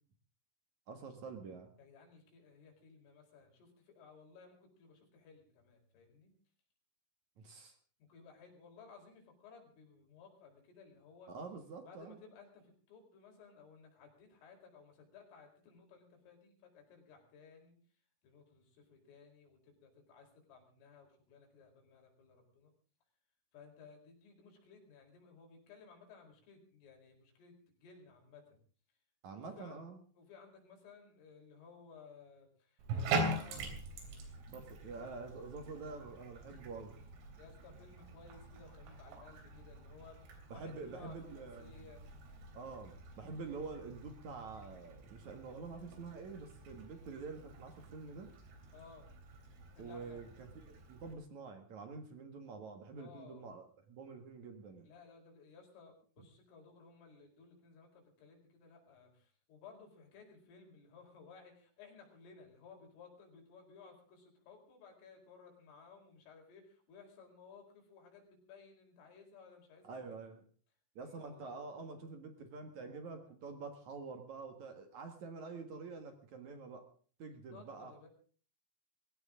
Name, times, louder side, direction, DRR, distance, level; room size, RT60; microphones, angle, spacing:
voice 1, 0.9-1.7 7.4-7.7 11.3-12.2 29.2-30.0 34.5-37.0 40.5-41.8 42.5-48.3 49.8-54.9 69.8-70.4 71.0-76.9 77.2-77.9, right 4 dB, 55° right, 6 dB, 2.1 m, -47 dB
voice 2, 1.8-6.3 8.1-11.3 11.9-17.8 18.2-22.7 23.5-27.5 27.8-28.6 29.3-29.8 30.2-33.7 37.4-42.0 48.7-49.1 49.8-50.2 53.0-53.4 54.9-70.2 71.0-71.5 77.5-78.1, left 5 dB, 70° left, 1 dB, 7.1 m, -58 dB
Bathtub (filling or washing), 32.8-51.1, right 2 dB, 90° right, 6.1 m, -44 dB
22.0 x 17.5 x 3.8 m, 0.42 s
omnidirectional pair, 5.9 m